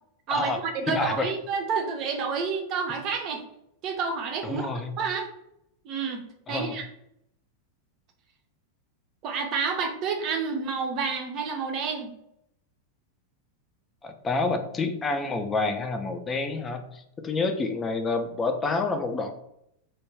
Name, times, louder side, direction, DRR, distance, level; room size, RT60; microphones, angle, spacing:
voice 1, 0.3-3.4 3.8-4.7 5.0-5.3 5.8-6.2 6.5-6.9 9.2-12.1, right 5 dB, 35° right, 4 dB, 0.5 m, -29 dB
voice 2, 0.9-1.3 4.4-5.0 6.5-6.8 14.0-19.3, left 3 dB, 20° left, 6 dB, 0.4 m, -28 dB
2.2 x 2.1 x 3.3 m, 0.76 s
figure-of-eight pair, 90°, 0 cm